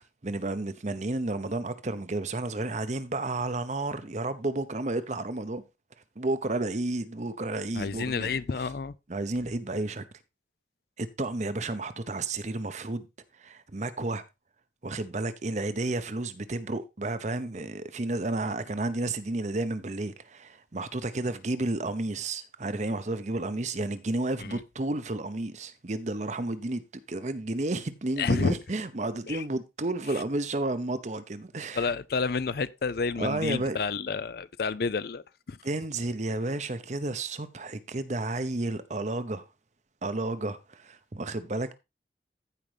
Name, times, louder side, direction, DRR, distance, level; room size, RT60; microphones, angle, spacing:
voice 1, 0.0-5.6 6.2-8.3 9.1-10.0 11.0-13.1 13.4-14.2 14.8-26.8 27.1-31.9 33.2-33.8 35.6-39.4 40.0-41.7, right 2 dB, 40° right, 0.8 m, -31 dB
voice 2, 7.7-8.9 24.4-24.6 28.2-28.6 29.3-29.4 31.7-35.6, left 4 dB, 55° left, 0.5 m, -30 dB
15.0 x 5.2 x 3.3 m
head